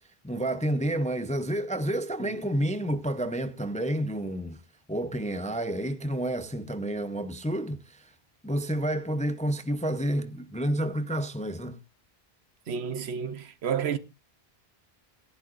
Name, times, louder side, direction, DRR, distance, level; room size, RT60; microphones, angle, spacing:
voice 1, 0.2-4.6 4.9-8.1 8.4-11.8, right 1 dB, 10° left, 0.5 m, -30 dB
voice 2, 12.7-14.0, right 7 dB, 75° right, 1.1 m, -31 dB
17.5 x 11.0 x 2.5 m
omnidirectional pair, 1.1 m